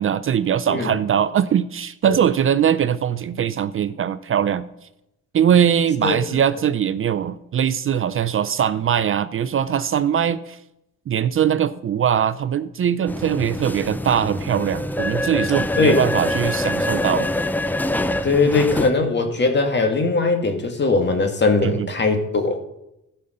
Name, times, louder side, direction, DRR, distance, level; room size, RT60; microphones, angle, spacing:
voice 1, 0.0-4.7 5.3-10.6 11.1-17.3 21.6-21.9, right 9 dB, 45° right, 15 dB, 0.5 m, -21 dB
sound 1, 13.1-18.9, left 1 dB, 5° left, 0.6 m, -25 dB
voice 2, 18.2-22.6, left 3 dB, 35° left, 5 dB, 2.2 m, -20 dB
15.0 x 5.6 x 6.6 m, 0.86 s
cardioid pair, 90°, 30 cm